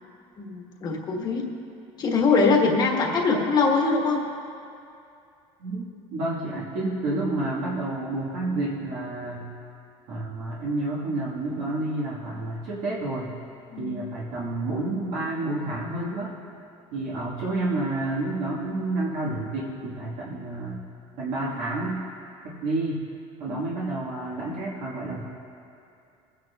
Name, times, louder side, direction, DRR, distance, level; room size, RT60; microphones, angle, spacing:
voice 1, 0.4-1.5 2.0-4.2 13.7-14.0 23.5-23.6, left 4 dB, 35° left, 0 dB, 1.4 m, -23 dB
voice 2, 6.1-9.5 10.1-13.3 13.8-16.3 16.9-20.8 21.2-22.0 22.4-23.0 23.4-25.2, right 2 dB, 70° right, -7 dB, 1.7 m, -29 dB
23.0 x 9.1 x 2.4 m, 2.6 s
cardioid pair, 150°, 13 cm